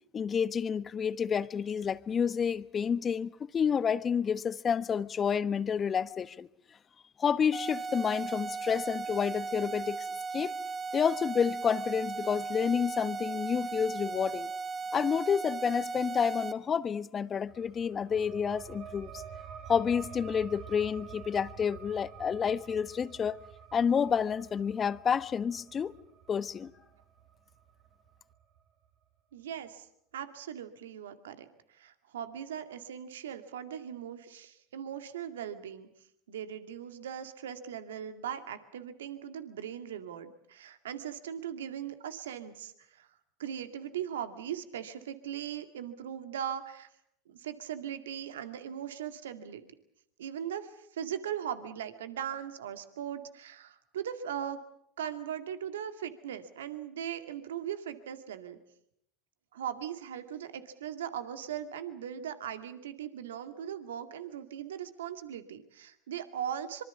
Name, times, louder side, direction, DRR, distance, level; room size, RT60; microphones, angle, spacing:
voice 1, 0.1-6.5 7.2-10.1 10.3-10.5 10.9-14.5 14.9-19.2 19.7-23.4 23.7-25.9 26.3-26.7, left 7 dB, 30° left, 1.2 m, -29 dB
sound 1, 7.5-16.5, right 4 dB, 25° right, 2.1 m, -37 dB
sound 2, 17.5-28.6, right 7 dB, 60° right, 4.6 m, -49 dB
voice 2, 29.3-29.9 30.1-35.9 36.3-43.1 43.4-46.9 47.3-49.6 50.2-54.6 55.0-58.6 59.5-66.8, right 9 dB, 85° right, 2.1 m, -39 dB
25.5 x 24.0 x 7.1 m
hypercardioid pair, 85°, 0 cm